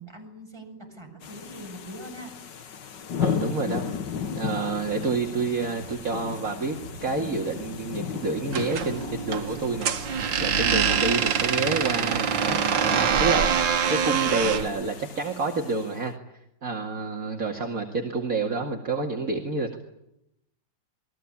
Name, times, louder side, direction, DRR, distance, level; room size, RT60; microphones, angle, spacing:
voice 1, 0.0-2.3, right 1 dB, 15° right, 2 dB, 7.3 m, -42 dB
sound 1, 1.2-16.0, left 7 dB, 70° left, 2.0 m, -36 dB
voice 2, 3.2-3.8 4.3-9.9 10.4-12.6 12.9-13.5 13.9-16.1 16.6-19.8, right 3 dB, 45° right, 2 dB, 2.5 m, -28 dB
sound 2, 4.0-15.2, left 1 dB, 40° left, 4.5 m, -49 dB
sound 3, 8.5-14.7, right 7 dB, 80° right, 2.1 m, -25 dB
29.0 x 21.5 x 8.6 m, 0.81 s
omnidirectional pair, 2.0 m